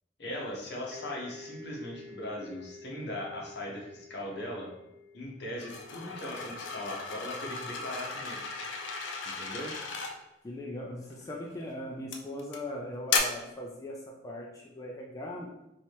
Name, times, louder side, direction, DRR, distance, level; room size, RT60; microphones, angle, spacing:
voice 1, 0.2-4.7 5.1-8.4 9.2-9.7, left 1 dB, 65° left, -2 dB, 0.9 m, -39 dB
sound 1, 0.9-8.4, left 3 dB, 50° right, 0.4 m, -51 dB
sound 2, 5.6-10.2 11.1-11.4 12.1-12.6 13.1-13.2, left 5 dB, 90° left, 0.4 m, -35 dB
voice 2, 10.4-15.5, left 1 dB, 20° left, -2 dB, 0.3 m, -39 dB
3.3 x 2.7 x 2.8 m, 0.89 s
head